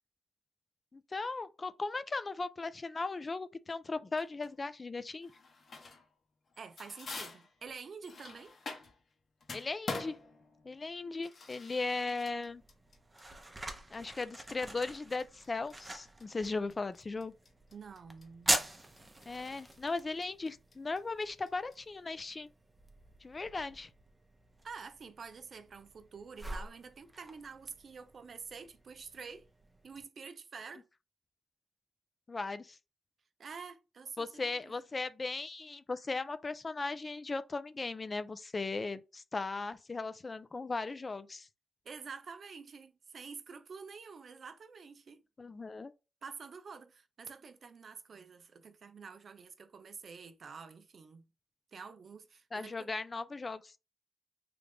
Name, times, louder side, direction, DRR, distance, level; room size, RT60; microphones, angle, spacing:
voice 1, 0.9-5.3 9.5-10.2 10.6-12.6 13.9-17.3 19.3-22.5 23.2-23.9 32.3-32.8 34.2-41.5 45.4-45.9 52.5-53.7, left 3 dB, 35° left, 0.4 m, -37 dB
sound 1, 4.2-4.5 5.2-6.1 6.5-9.1 9.4-21.8, left 3 dB, 50° left, 0.9 m, -46 dB
voice 2, 6.6-8.5 17.7-18.7 24.6-29.5 29.8-30.8 33.4-34.8 41.9-45.2 46.2-51.3 51.7-52.9, right 5 dB, 55° right, 0.5 m, -48 dB
sound 2, 12.5-30.0, right 1 dB, 20° right, 0.7 m, -43 dB
3.3 x 2.5 x 3.4 m
cardioid pair, 75°, 0 cm